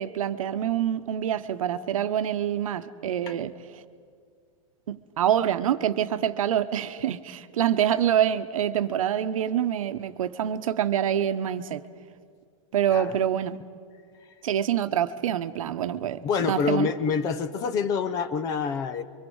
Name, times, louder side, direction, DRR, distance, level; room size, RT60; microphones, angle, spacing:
voice 1, 0.0-3.5 4.9-11.8 12.7-13.6 14.4-16.2 16.5-16.9, right 10 dB, 75° right, 11 dB, 1.1 m, -26 dB
voice 2, 16.2-19.0, left 6 dB, 20° left, 12 dB, 0.7 m, -27 dB
30.0 x 24.0 x 5.5 m, 2.1 s
supercardioid pair, 170°, 17 cm